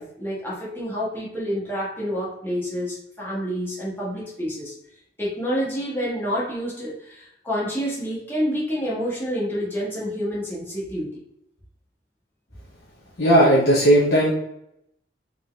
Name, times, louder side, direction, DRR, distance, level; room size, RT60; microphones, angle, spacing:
voice 1, 0.0-4.7 5.2-11.2, equal, 10° left, -6 dB, 1.4 m, -28 dB
voice 2, 13.2-14.3, right 1 dB, 60° left, -6 dB, 0.8 m, -16 dB
4.0 x 3.7 x 2.4 m, 0.77 s
head